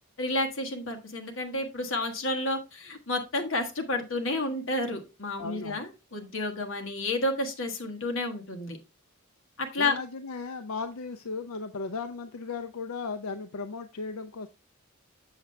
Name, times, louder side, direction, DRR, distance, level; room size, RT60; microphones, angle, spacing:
voice 1, 0.2-8.8 9.6-10.0, left 2 dB, 65° left, 1.3 m, -30 dB
voice 2, 5.4-5.9 9.8-14.5, left 4 dB, 90° left, 0.5 m, -36 dB
7.2 x 6.7 x 3.2 m
head